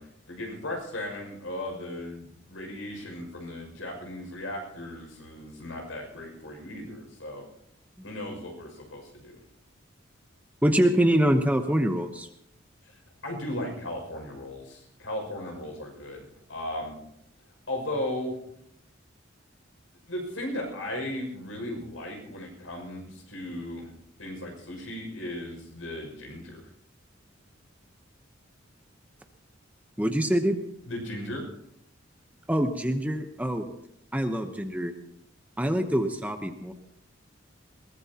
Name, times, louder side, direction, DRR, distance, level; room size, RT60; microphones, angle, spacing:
voice 1, 0.0-7.4 8.0-9.4 12.8-13.0 13.2-16.9 17.7-18.4 20.1-23.9 24.2-26.6 30.9-31.4, left 1 dB, 85° left, 1 dB, 6.3 m, -36 dB
voice 2, 10.6-12.3 30.0-30.6 32.5-33.7 34.1-34.9 35.6-36.7, right 1 dB, 10° right, 5 dB, 1.0 m, -25 dB
21.5 x 19.0 x 2.9 m, 0.75 s
head